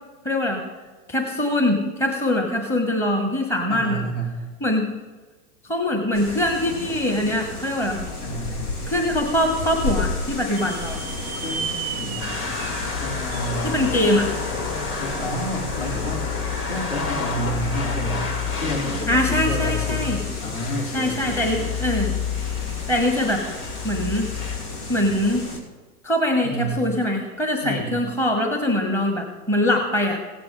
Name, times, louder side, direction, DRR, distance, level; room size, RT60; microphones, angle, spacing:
voice 1, 0.2-0.6 1.1-4.1 4.6-4.9 5.6-8.0 8.9-11.0 12.5-12.6 13.6-14.3 19.1-20.2 20.9-22.1 22.9-23.4 23.8-24.3 24.9-25.5 26.0-30.2, left 1 dB, 5° left, 2 dB, 1.0 m, -23 dB
voice 2, 3.7-4.4 8.2-8.8 11.4-12.5 13.0-13.8 15.0-16.3 16.6-18.2 18.6-20.1 20.4-21.7 26.4-26.8 27.6-28.0, equal, 55° left, 0 dB, 3.3 m, -30 dB
sound 1, 6.1-25.6, left 3 dB, 75° left, 2.1 m, -33 dB
sound 2, 10.6-14.1, right 7 dB, 20° right, 0.4 m, -34 dB
sound 3, 12.2-24.6, left 6 dB, 30° left, 2.1 m, -29 dB
15.5 x 8.7 x 3.8 m, 1.3 s
hypercardioid pair, 120°, 45 cm